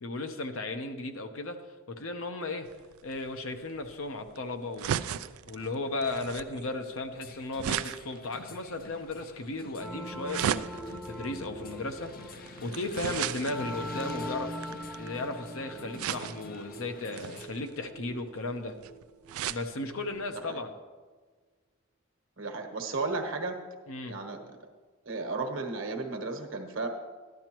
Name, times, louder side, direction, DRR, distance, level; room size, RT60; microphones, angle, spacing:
voice 1, 0.0-1.6 1.9-2.7 3.0-5.0 5.5-14.7 15.0-18.7 19.5-20.7 23.9-24.2, left 2 dB, 75° left, 6 dB, 0.8 m, -35 dB
sound 1, 2.7-15.3 16.0-16.6 17.1-19.7 20.1-20.2 20.5-20.6, right 9 dB, 90° right, 0.3 m, -37 dB
sound 2, 7.1-17.5, left 3 dB, 45° left, 0.5 m, -48 dB
sound 3, 9.8-20.2, equal, 5° right, 0.7 m, -42 dB
voice 2, 22.4-23.6 24.1-24.4 25.0-26.9, right 3 dB, 65° right, 4 dB, 1.2 m, -34 dB
13.0 x 10.5 x 3.0 m, 1.4 s
head